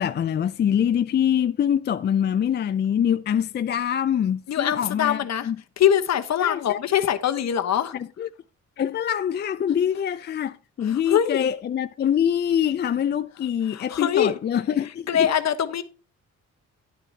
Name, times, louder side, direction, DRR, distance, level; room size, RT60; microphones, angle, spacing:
voice 1, 0.0-5.6 6.4-7.1 7.9-8.3 8.8-15.3, left 9 dB, 35° left, 0.4 m, -24 dB
voice 2, 4.5-7.9 10.8-11.5 13.7-14.4 15.1-15.8, left 9 dB, 60° left, 1.1 m, -23 dB
10.0 x 9.9 x 2.8 m
cardioid pair, 90°, 30 cm